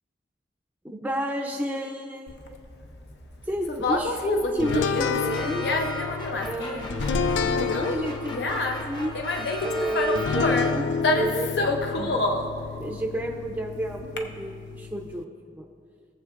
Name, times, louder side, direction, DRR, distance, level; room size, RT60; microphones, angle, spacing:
voice 1, 0.8-2.2 3.5-5.7 6.4-8.6 8.8-9.2 9.6-11.6 11.9-12.3 12.8-15.6, equal, 10° right, 1 dB, 0.6 m, -31 dB
Conversation, 2.3-14.2, left 2 dB, 65° left, 0.7 m, -28 dB
sound 1, 4.6-15.2, left 5 dB, 90° left, 0.3 m, -31 dB
sound 2, 4.6-11.1, left 1 dB, 25° left, 0.8 m, -37 dB
17.5 x 7.5 x 2.5 m, 2.2 s
head